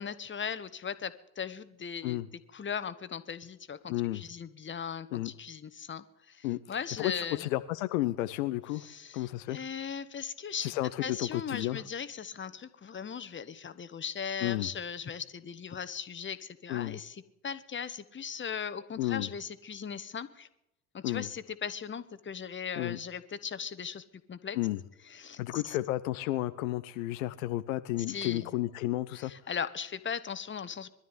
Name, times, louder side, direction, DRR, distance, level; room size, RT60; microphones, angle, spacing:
voice 1, 0.0-2.2 2.5-7.5 8.7-10.7 11.0-20.5 20.9-24.6 25.1-25.8 28.1-28.5 29.1-30.9, left 7 dB, 25° left, 13 dB, 1.5 m, -38 dB
voice 2, 3.9-4.2 5.1-5.3 6.4-8.9 9.1-9.6 10.6-11.8 14.4-14.7 16.7-17.0 19.0-19.3 21.0-21.3 22.8-23.0 24.5-24.8 25.4-29.3, left 16 dB, 65° left, 11 dB, 1.0 m, -32 dB
21.5 x 12.5 x 9.7 m, 0.86 s
figure-of-eight pair, 55°, 42 cm